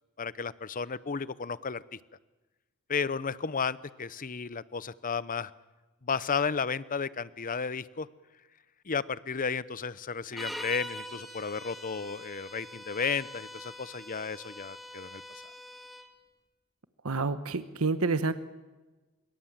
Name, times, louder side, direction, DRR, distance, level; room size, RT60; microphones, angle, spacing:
voice 1, 0.2-2.0 2.9-5.5 6.0-8.1 8.8-15.2, left 5 dB, 40° left, 17 dB, 0.8 m, -33 dB
sound 1, 10.3-16.1, left 1 dB, ahead, 2.5 m, -44 dB
voice 2, 17.0-18.3, right 3 dB, 85° right, 11 dB, 1.1 m, -28 dB
26.0 x 23.0 x 7.4 m, 1.2 s
head